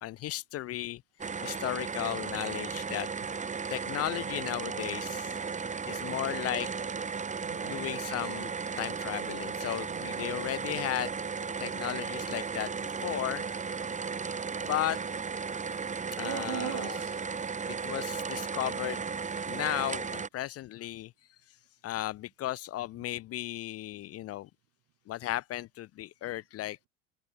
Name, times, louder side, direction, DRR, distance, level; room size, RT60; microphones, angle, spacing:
voice 1, 0.0-3.1 3.7-5.4 5.9-6.7 7.6-8.5 8.8-11.1 11.6-12.7 13.0-13.4 14.6-15.0 16.2-17.0 17.8-19.0 19.4-21.1 21.8-24.5 25.1-26.8, left 14 dB, 40° left, 0.7 m, -35 dB
sound 1, 1.2-20.3, right 5 dB, 20° right, 2.2 m, -35 dB
voice 2, 7.2-8.0 9.9-10.1 15.6-17.2, right 19 dB, 60° right, 7.4 m, -42 dB
supercardioid pair, 100°, 37 cm